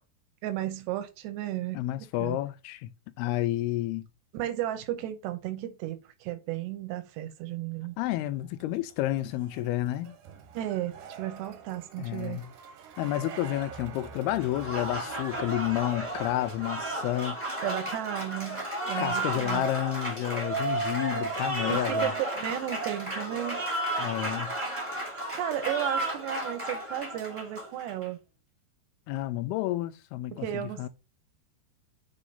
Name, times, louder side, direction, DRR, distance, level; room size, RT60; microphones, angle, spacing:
voice 1, 0.4-1.8 2.2-2.4 4.3-8.0 10.5-12.4 17.6-19.7 21.7-23.6 25.3-28.2 30.3-30.9, right 13 dB, 85° right, 3.0 m, -34 dB
voice 2, 1.7-2.9 3.2-4.1 8.0-10.2 12.0-12.5 13.0-17.4 19.0-22.1 24.0-24.6 29.1-30.9, left 14 dB, 80° left, 2.5 m, -30 dB
sound 1, 8.0-17.3, right 7 dB, 70° right, 2.0 m, -47 dB
Applause, 14.4-28.1, right 1 dB, 10° right, 1.4 m, -33 dB
7.0 x 3.8 x 5.4 m
omnidirectional pair, 4.8 m